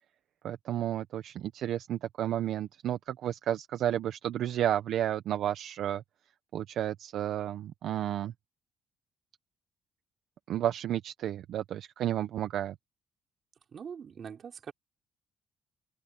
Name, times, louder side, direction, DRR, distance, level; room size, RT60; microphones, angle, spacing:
voice 1, 0.4-6.0 6.5-8.3 10.5-12.7, right 11 dB, 75° right, 1.1 m, -32 dB
voice 2, 13.7-14.7, right 7 dB, 55° right, 5.1 m, -43 dB
open air
cardioid pair, 90°, 0 cm